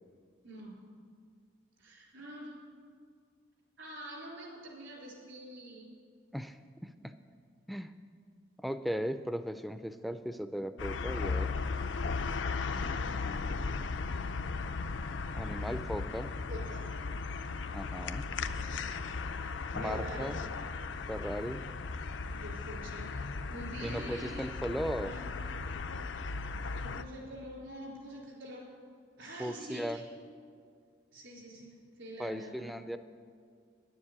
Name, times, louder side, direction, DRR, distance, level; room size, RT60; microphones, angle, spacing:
voice 1, 0.4-0.8 1.8-2.5 3.8-5.8 12.2-13.0 16.5-16.9 19.8-20.3 22.3-24.5 25.0-25.2 26.8-28.7 29.2-30.0 31.1-32.8, right 1 dB, 80° right, -3 dB, 3.9 m, -46 dB
voice 2, 6.3-7.2 7.7-7.9 8.6-11.5 15.4-16.3 17.7-18.3 19.7-20.4 21.1-21.6 23.8-25.1 29.4-30.0 32.2-33.0, equal, ahead, 10 dB, 0.3 m, -37 dB
sound 1, 10.8-27.0, left 4 dB, 75° left, 0.5 m, -36 dB
10.5 x 7.3 x 8.7 m, 2.2 s
head